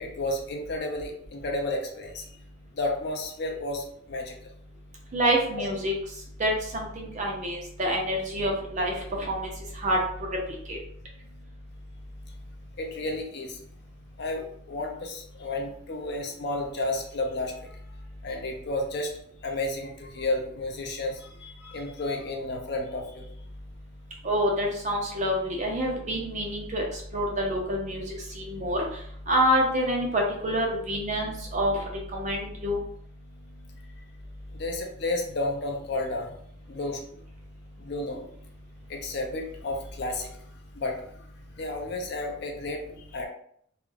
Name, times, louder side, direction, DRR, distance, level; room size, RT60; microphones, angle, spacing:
voice 1, 0.0-2.3 2.7-4.3 5.6-5.7 12.8-13.6 14.2-17.7 18.2-19.1 19.4-23.3 34.5-36.4 36.7-37.0 37.8-38.2 38.9-40.3 40.7-41.0 41.6-43.3, left 2 dB, 55° left, 2 dB, 0.5 m, -32 dB
voice 2, 5.1-5.9 6.4-10.8 24.2-32.8, equal, 40° right, 0 dB, 0.6 m, -27 dB
2.4 x 2.1 x 3.1 m, 0.66 s
head